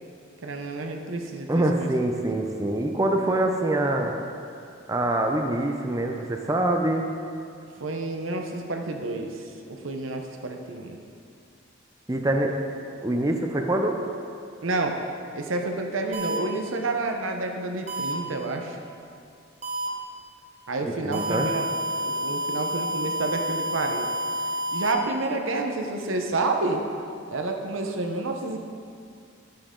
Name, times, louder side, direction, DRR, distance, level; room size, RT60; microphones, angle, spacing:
voice 1, 0.4-2.2 7.8-11.0 14.6-15.0 15.3-18.8 20.7-21.7 22.0-24.1 24.7-26.8 27.3-28.7, right 2 dB, 90° right, 3 dB, 0.9 m, -29 dB
voice 2, 1.5-4.1 4.9-7.1 12.1-12.6 13.0-14.0 20.8-21.5, right 1 dB, 15° right, 2 dB, 0.5 m, -25 dB
sound 1, 16.1-16.4 17.9-18.1 19.6-19.9 21.1-24.9, equal, 35° right, 1.1 m, -29 dB
11.0 x 8.7 x 3.8 m, 2.4 s
head